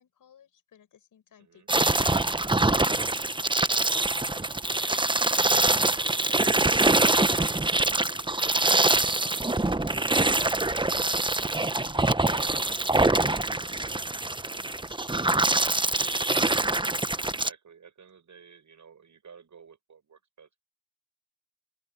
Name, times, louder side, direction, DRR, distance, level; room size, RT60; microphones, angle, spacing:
voice 1, 0.0-2.8 3.1-3.3 4.0-5.5 7.3-10.5 12.5-16.1, left 9 dB, 80° left, 7.5 m, -59 dB
sound 1, 1.7-17.5, right 2 dB, 15° right, 1.1 m, -24 dB
voice 2, 17.2-20.6, right 6 dB, 65° right, 7.2 m, -53 dB
open air
supercardioid pair, 40°, 32 cm